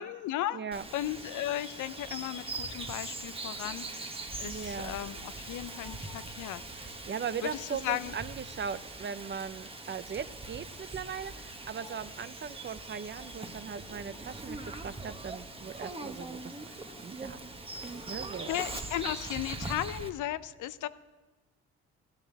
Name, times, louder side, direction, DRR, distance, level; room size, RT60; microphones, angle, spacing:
voice 1, 0.0-0.6 0.9-6.9 7.4-8.1 18.5-20.9, left 13 dB, 80° left, 14 dB, 0.7 m, -36 dB
voice 2, 0.5-0.8 4.5-5.0 7.1-16.7 17.0-17.4 17.8-18.6, right 7 dB, 40° right, 14 dB, 0.7 m, -39 dB
Bird vocalization bird call bird song, 0.7-20.1, right 2 dB, 20° right, 1.2 m, -42 dB
sound 1, 5.0-19.7, left 2 dB, 15° left, 1.3 m, -59 dB
14.5 x 11.0 x 7.3 m, 1.2 s
cardioid pair, 90°, 30 cm